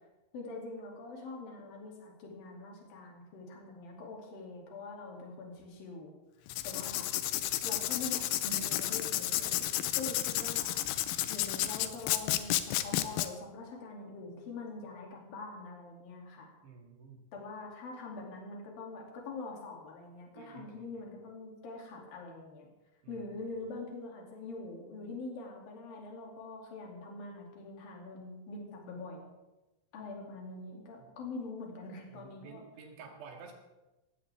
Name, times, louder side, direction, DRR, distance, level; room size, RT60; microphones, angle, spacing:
voice 1, 0.3-6.1 6.6-7.1 7.6-10.7 11.3-16.5 17.3-22.7 23.1-29.3 29.9-32.6, left 3 dB, 60° left, -1 dB, 4.5 m, -44 dB
Writing, 6.5-13.3, left 14 dB, 85° left, 2.8 m, -32 dB
voice 2, 16.6-17.2 20.4-21.0 23.0-23.6 31.0-31.2 32.1-33.5, right 5 dB, 90° right, 2 dB, 4.3 m, -52 dB
18.5 x 16.0 x 3.6 m, 1.1 s
omnidirectional pair, 4.7 m